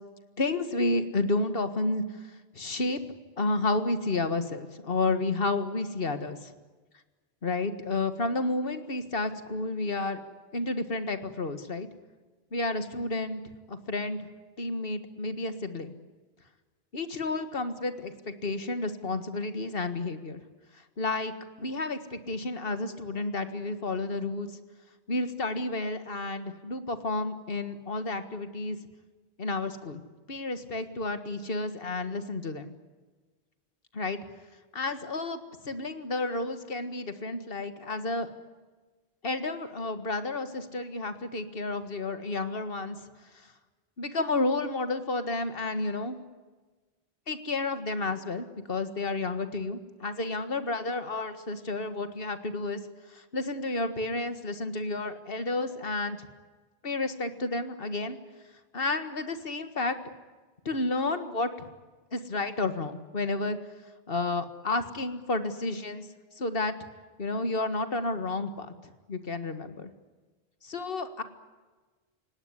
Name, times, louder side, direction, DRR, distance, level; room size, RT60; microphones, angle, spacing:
voice 1, 0.4-3.0 3.4-6.5 7.4-10.2 10.5-11.9 12.5-13.4 13.7-14.2 14.6-15.9 16.9-20.4 21.0-21.3 21.6-24.5 25.1-28.8 29.4-30.0 30.3-32.7 33.9-34.2 34.7-38.3 39.2-43.0 44.0-46.2 47.3-52.8 53.1-56.2 56.8-58.2 58.7-60.0 60.7-61.7 62.1-63.6 64.1-66.1 66.4-66.7 67.2-68.7 69.1-69.9 70.6-71.2, left 2 dB, 65° left, 9 dB, 1.9 m, -31 dB
29.5 x 17.5 x 9.9 m, 1.3 s
omnidirectional pair, 1.0 m